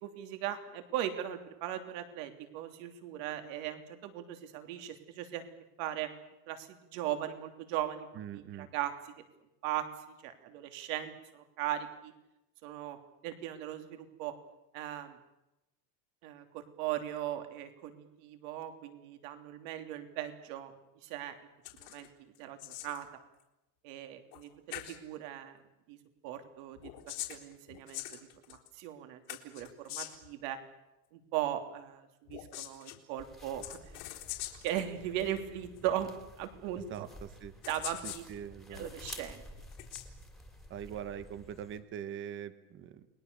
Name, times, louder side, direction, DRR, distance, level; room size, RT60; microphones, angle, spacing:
voice 1, 0.0-5.4 5.8-6.1 6.5-8.1 8.3-9.1 9.6-12.1 12.6-13.0 13.2-14.3 14.7-15.2 16.2-21.3 21.8-23.1 23.8-25.6 25.9-26.0 26.2-26.9 27.3-28.2 28.5-30.6 31.1-34.1 34.6-36.1 36.4-37.1 37.7-38.2 38.7-39.4, right 11 dB, 60° right, 7 dB, 3.2 m, -38 dB
voice 2, 8.2-8.7 36.9-37.5 38.0-38.9 40.7-43.1, right 9 dB, 25° right, 13 dB, 1.2 m, -43 dB
sound 1, 21.6-22.1 22.4-23.1 24.3-24.4 24.7-25.0 26.8-28.7 29.3-30.3 32.3-33.0 33.6-34.8 35.8-35.9 36.9-37.0 37.6-38.3 38.8-39.2 39.7-40.1, left 16 dB, 80° left, 3.8 m, -43 dB
sound 2, 33.2-41.8, left 1 dB, ahead, 2.6 m, -52 dB
29.5 x 21.5 x 6.9 m, 0.94 s
cardioid pair, 180°, 46 cm